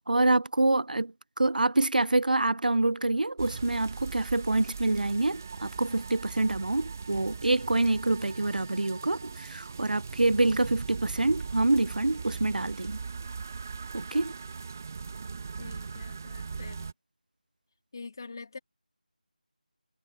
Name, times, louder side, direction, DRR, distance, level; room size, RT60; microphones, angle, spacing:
voice 1, 0.0-13.0 13.9-14.3, right 2 dB, 70° right, 0.6 m, -26 dB
sound 1, 3.4-16.9, right 5 dB, 20° right, 1.4 m, -39 dB
voice 2, 15.6-16.9 17.9-18.6, left 4 dB, 30° left, 3.3 m, -44 dB
figure-of-eight pair, 175°, 5 cm